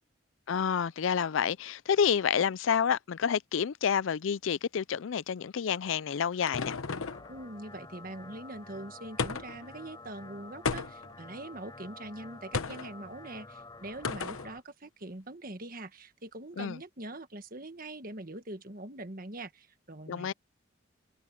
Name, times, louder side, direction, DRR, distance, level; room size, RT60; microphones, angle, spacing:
voice 1, 0.5-6.8 16.6-16.8 20.1-20.3, left 7 dB, 70° left, 0.4 m, -29 dB
sound 1, 5.7-7.3 9.2-9.7 10.6-11.2 12.5-12.9 14.0-14.5, left 4 dB, 85° left, 1.0 m, -34 dB
sound 2, 6.6-14.6, left 2 dB, 20° left, 6.1 m, -49 dB
voice 2, 7.3-20.3, right 1 dB, 45° right, 1.6 m, -43 dB
head